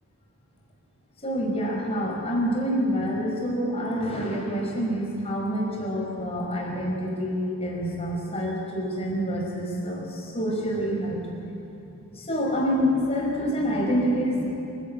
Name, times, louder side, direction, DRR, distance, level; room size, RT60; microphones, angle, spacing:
voice 1, 1.2-11.2 12.3-14.4, equal, 30° left, -2 dB, 5.5 m, -27 dB
27.0 x 16.0 x 8.9 m, 2.9 s
head